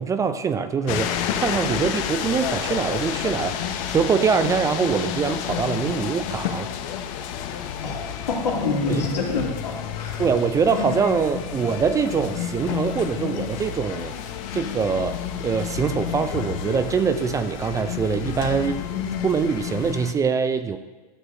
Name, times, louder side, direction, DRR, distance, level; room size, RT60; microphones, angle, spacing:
voice 1, 0.0-6.7 8.9-9.0 10.2-14.2 14.5-18.8 19.2-20.8, right 6 dB, 15° right, 10 dB, 0.4 m, -24 dB
sound 1, 0.9-20.1, left 9 dB, 55° left, 0.8 m, -30 dB
voice 2, 7.8-10.2, left 3 dB, 90° left, -2 dB, 2.2 m, -27 dB
13.0 x 6.1 x 2.7 m, 1.3 s
hypercardioid pair, 110°, 21 cm